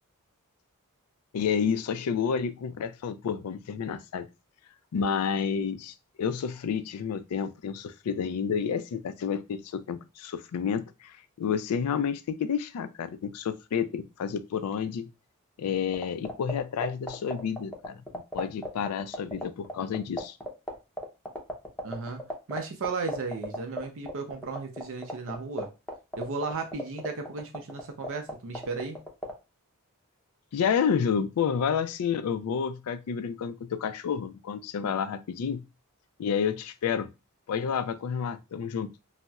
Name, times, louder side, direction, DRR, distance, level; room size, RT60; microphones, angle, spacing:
voice 1, 1.3-4.3 4.9-15.1 15.6-18.0 18.3-20.3 30.5-35.6 36.2-37.1 37.5-38.9, left 7 dB, 90° left, 0.4 m, -30 dB
sound 1, 15.9-29.3, equal, 5° left, 0.6 m, -33 dB
voice 2, 21.8-25.7 26.2-29.0, right 4 dB, 65° right, 0.5 m, -35 dB
4.0 x 2.0 x 2.3 m
head